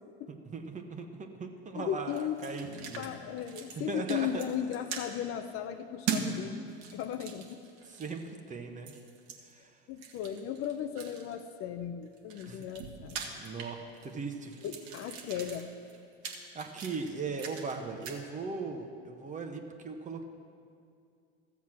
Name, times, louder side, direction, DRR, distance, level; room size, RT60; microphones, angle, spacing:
voice 1, 0.3-3.1 3.7-4.4 7.9-8.9 9.4-9.7 12.5-12.6 13.2-14.7 16.3-20.2, right 4 dB, 25° right, 5 dB, 1.1 m, -39 dB
voice 2, 1.7-2.7 3.0-6.6 6.9-7.6 9.9-13.3 14.6-15.7, left 9 dB, 40° left, 8 dB, 0.7 m, -36 dB
sound 1, 2.1-3.1 3.4-3.8 4.1-5.1 6.1-6.3 6.7-8.3 8.9-9.4 10.0-11.4 12.0-14.2 14.5-17.8 18.0-18.2, right 7 dB, 55° right, 1.5 m, -40 dB
sound 2, 2.6-6.7, left 2 dB, 25° left, 1.6 m, -57 dB
14.0 x 7.2 x 6.1 m, 2.4 s
hypercardioid pair, 90°, 32 cm